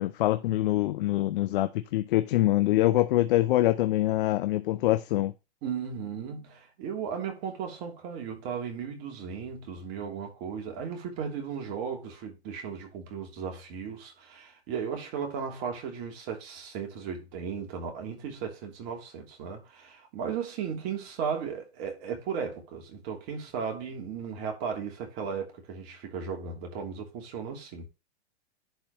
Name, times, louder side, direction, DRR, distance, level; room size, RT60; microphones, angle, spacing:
voice 1, 0.0-5.3, left 15 dB, 55° left, 0.7 m, -24 dB
voice 2, 5.6-27.9, right 6 dB, 40° right, 3.0 m, -36 dB
11.0 x 4.5 x 3.2 m
hypercardioid pair, 120°, 33 cm